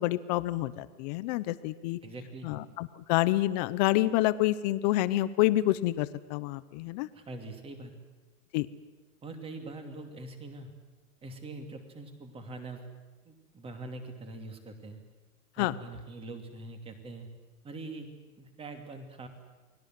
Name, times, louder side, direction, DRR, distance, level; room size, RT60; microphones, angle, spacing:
voice 1, 0.0-2.0 2.4-7.1 8.5-8.7 15.6-15.7, left 16 dB, 30° left, 16 dB, 0.9 m, -28 dB
voice 2, 2.0-2.5 7.1-7.9 9.2-10.7 11.2-12.8 13.2-15.0 15.6-17.3 17.6-18.1 18.4-19.3, right 2 dB, 10° right, 6 dB, 2.7 m, -43 dB
29.0 x 20.5 x 7.7 m, 1.3 s
hypercardioid pair, 155°, 46 cm